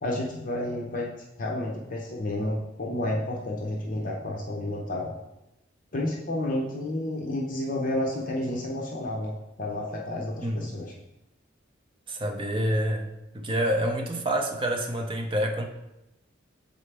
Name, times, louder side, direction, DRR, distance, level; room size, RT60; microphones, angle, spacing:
voice 1, 0.0-1.1 1.4-5.1 5.9-10.9, left 1 dB, 45° left, -2 dB, 0.7 m, -30 dB
voice 2, 10.4-10.7 12.1-15.7, right 1 dB, 25° right, 2 dB, 0.6 m, -27 dB
7.2 x 4.1 x 3.3 m, 0.92 s
head